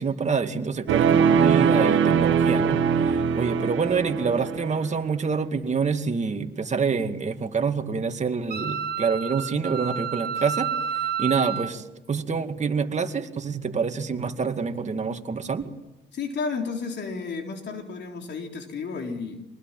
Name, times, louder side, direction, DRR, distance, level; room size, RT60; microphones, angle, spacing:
voice 1, 0.0-2.8 3.3-10.7 11.2-15.7, right 5 dB, 35° right, 6 dB, 2.3 m, -26 dB
sound 1, 0.9-4.9, right 7 dB, 75° right, 1.6 m, -21 dB
Wind instrument woodwind instrument, 8.5-11.7, right 7 dB, 50° right, 1.7 m, -29 dB
voice 2, 16.1-19.5, left 4 dB, 60° left, 3 dB, 3.8 m, -32 dB
25.0 x 20.0 x 9.2 m, 0.98 s
cardioid pair, 90°, 20 cm